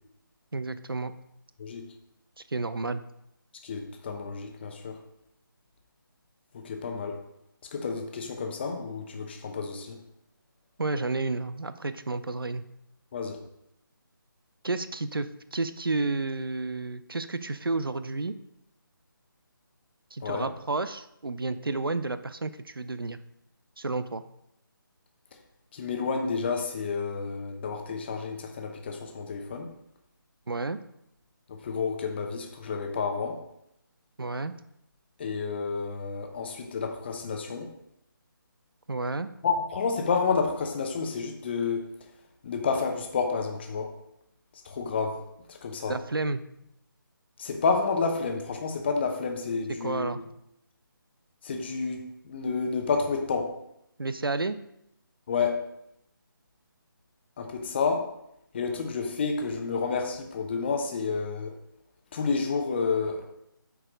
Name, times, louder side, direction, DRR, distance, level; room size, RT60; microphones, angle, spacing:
voice 1, 0.5-1.1 2.4-3.0 10.8-12.6 14.6-18.3 20.1-23.2 23.8-24.2 30.5-30.8 34.2-34.5 38.9-39.3 45.9-46.4 49.8-50.2 54.0-54.6, right 3 dB, 80° right, 13 dB, 0.6 m, -31 dB
voice 2, 3.6-5.0 6.5-7.2 7.7-10.0 13.1-13.4 20.2-20.5 25.7-29.7 31.5-33.4 35.2-37.7 39.4-41.9 42.4-43.9 44.6-45.2 45.5-46.0 47.4-50.1 51.4-53.6 55.3-55.6 57.4-58.1 58.5-61.5 62.1-63.4, left 5 dB, 30° left, 4 dB, 0.9 m, -30 dB
8.5 x 4.7 x 5.0 m, 0.79 s
figure-of-eight pair, 155°, 12 cm